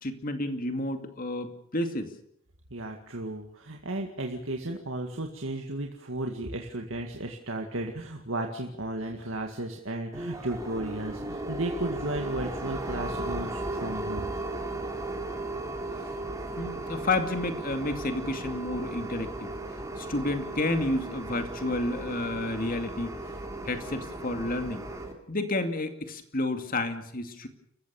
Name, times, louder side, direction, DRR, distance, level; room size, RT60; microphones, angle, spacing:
voice 1, 0.0-2.1 16.6-19.5 20.0-23.2 23.6-24.9 25.3-27.5, left 2 dB, 45° left, 7 dB, 2.5 m, -30 dB
voice 2, 2.7-14.3, right 2 dB, 70° right, 3 dB, 2.0 m, -34 dB
sound 1, 10.1-25.1, right 2 dB, 15° right, 3.3 m, -36 dB
29.5 x 15.0 x 7.1 m, 0.73 s
head